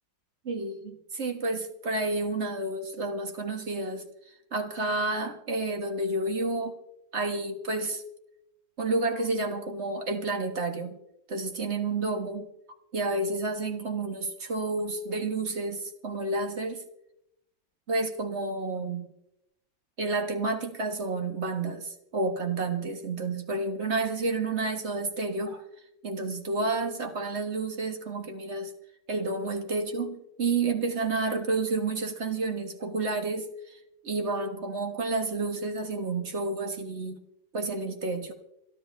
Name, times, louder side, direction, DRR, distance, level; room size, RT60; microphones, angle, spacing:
voice 1, 0.5-4.1 4.5-6.8 7.1-8.0 8.8-11.0 11.3-12.5 12.9-16.8 17.9-19.1 20.0-25.6 26.0-28.7 29.1-33.8 34.0-37.2 37.5-38.3, right 3 dB, 40° right, 6 dB, 1.5 m, -30 dB
27.5 x 10.0 x 3.2 m, 0.82 s
omnidirectional pair, 1.9 m